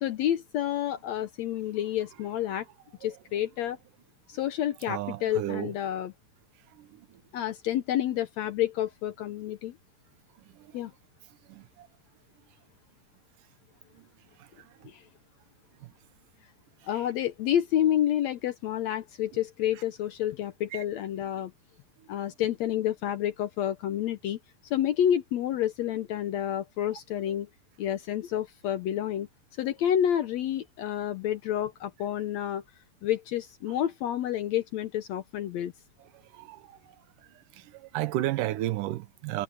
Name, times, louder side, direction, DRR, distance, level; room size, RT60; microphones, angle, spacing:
voice 1, 0.0-2.7 3.0-3.8 4.3-6.1 7.3-9.7 10.7-10.9 14.8-15.0 16.8-21.5 22.1-27.5 27.8-29.3 29.6-32.6 33.0-35.7, left 11 dB, 75° left, 1.7 m, -29 dB
voice 2, 4.9-5.7 6.9-7.0 11.5-11.9 20.7-20.8 36.3-36.6 37.7-39.4, right 15 dB, 80° right, 2.3 m, -32 dB
omnidirectional pair, 3.8 m